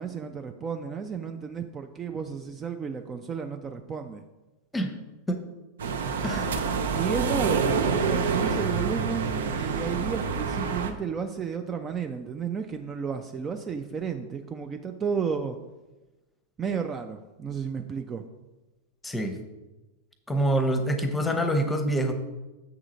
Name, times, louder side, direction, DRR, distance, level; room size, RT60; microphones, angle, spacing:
voice 1, 0.0-4.2 6.9-15.6 16.6-18.2, right 6 dB, 20° right, 6 dB, 0.4 m, -32 dB
sound 1, 5.8-10.9, right 5 dB, 60° right, 0.7 m, -27 dB
voice 2, 19.0-19.4 20.3-22.1, right 1 dB, 10° left, 6 dB, 0.9 m, -26 dB
7.0 x 3.7 x 6.1 m, 1.1 s
figure-of-eight pair, 90°, 0 cm